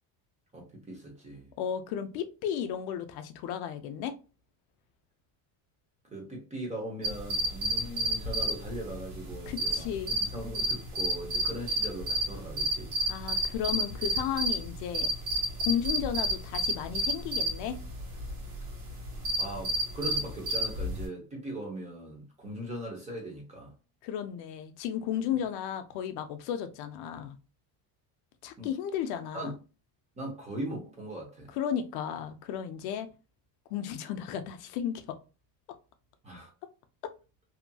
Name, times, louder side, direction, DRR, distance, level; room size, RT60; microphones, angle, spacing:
voice 1, 0.5-1.5 6.0-9.9 10.3-12.9 19.4-23.7 28.6-28.7 29.3-29.6 30.2-31.5 36.2-36.5, right 1 dB, 15° right, 0.8 m, -39 dB
voice 2, 1.6-4.2 9.5-10.1 13.1-15.1 15.6-17.8 24.0-27.3 28.4-29.5 31.5-33.1 33.7-35.2 37.0-37.1, left 9 dB, 55° left, 0.5 m, -34 dB
sound 1, 7.0-21.1, right 1 dB, 70° right, 1.4 m, -31 dB
2.8 x 2.6 x 2.2 m
cardioid pair, 160°, 47 cm